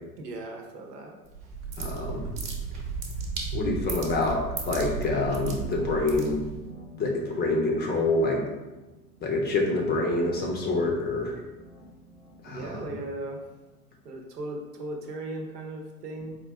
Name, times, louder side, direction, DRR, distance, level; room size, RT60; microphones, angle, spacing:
voice 1, 0.2-1.2 12.5-13.4 14.0-16.4, right 2 dB, 80° right, 2 dB, 0.9 m, -37 dB
sound 1, 1.3-6.7, right 5 dB, 35° right, 1.0 m, -34 dB
voice 2, 1.8-2.3 3.5-6.4 7.0-8.5 9.2-11.4 12.4-12.7, left 2 dB, 20° left, 0 dB, 0.6 m, -26 dB
sound 2, 4.8-13.8, right 1 dB, 10° right, 0.8 m, -47 dB
4.4 x 2.5 x 3.4 m, 1.1 s
hypercardioid pair, 95°, 47 cm